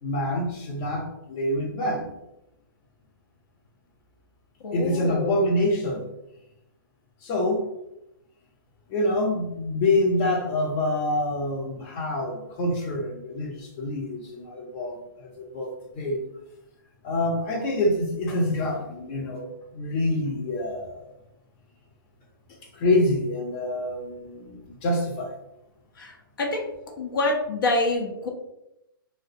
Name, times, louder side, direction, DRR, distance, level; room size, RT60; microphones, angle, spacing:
voice 1, 0.0-2.1 4.7-6.0 7.2-7.7 8.9-16.2 17.0-21.1 22.7-25.3, left 1 dB, 30° left, 0 dB, 0.6 m, -26 dB
voice 2, 4.6-5.4 26.0-26.7 27.0-28.3, left 2 dB, 65° left, 1 dB, 0.7 m, -26 dB
2.3 x 2.1 x 2.6 m, 0.87 s
hypercardioid pair, 135°, 12 cm